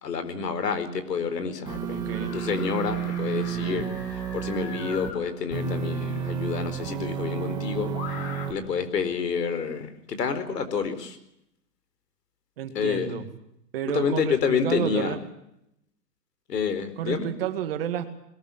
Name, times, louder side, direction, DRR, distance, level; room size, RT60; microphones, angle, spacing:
voice 1, 0.0-3.9 4.3-7.9 8.5-11.2 12.7-13.1 13.9-15.2 16.5-17.3, left 6 dB, 80° left, 10 dB, 4.6 m, -28 dB
sound 1, 1.7-5.1 5.5-8.5, right 8 dB, 10° right, 1.8 m, -31 dB
voice 2, 1.9-2.4 12.6-13.3 13.7-15.2 17.0-18.1, right 9 dB, 35° right, 8 dB, 2.2 m, -30 dB
sound 2, 2.1-5.2 6.6-6.7 7.9-8.5, left 6 dB, 25° left, 2.8 m, -41 dB
sound 3, 5.6-9.5, left 7 dB, 40° left, 1.4 m, -43 dB
21.5 x 20.0 x 7.3 m, 0.80 s
hypercardioid pair, 175°, 48 cm